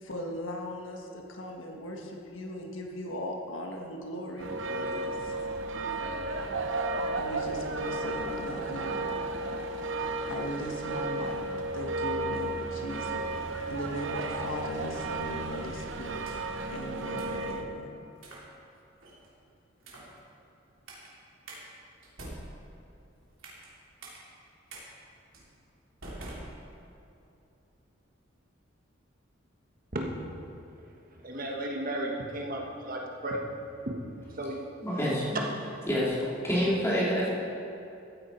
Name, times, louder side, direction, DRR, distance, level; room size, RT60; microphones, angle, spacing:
voice 1, 0.0-5.3 7.2-9.2 10.3-11.4 11.7-16.3 16.7-17.9, equal, 80° left, 1 dB, 1.5 m, -38 dB
sound 1, 4.4-17.7, right 2 dB, 70° right, 0.8 m, -33 dB
sound 2, 16.0-16.6 17.2-17.4 18.2-18.5 19.0-19.3 19.8-20.2 20.9-21.1 21.5-21.6 22.0-23.7 24.0-24.2 24.7-24.8 25.3-25.5 26.0-27.1, right 1 dB, 85° right, 3.0 m, -45 dB
voice 2, 31.1-33.4 33.9-34.0 34.3-34.6 35.1-35.4, right 1 dB, 45° right, 0 dB, 1.4 m, -34 dB
voice 3, 34.8-35.4 35.9-36.2 36.4-37.3, equal, 15° left, -7 dB, 2.9 m, -27 dB
14.5 x 9.6 x 4.5 m, 2.8 s
head